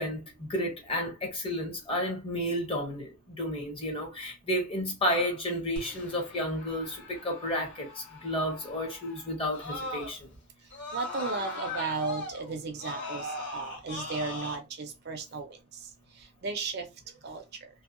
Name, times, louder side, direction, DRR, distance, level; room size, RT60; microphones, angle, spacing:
voice 1, 0.0-10.3, equal, 25° left, 0.7 m, -32 dB
Screaming, 5.8-10.4 10.7-14.6, left 2 dB, 55° left, 1.0 m, -40 dB
voice 2, 10.9-15.6 16.4-16.9 17.2-17.4, right 4 dB, 50° right, 0.4 m, -34 dB
2.6 x 2.1 x 2.5 m
head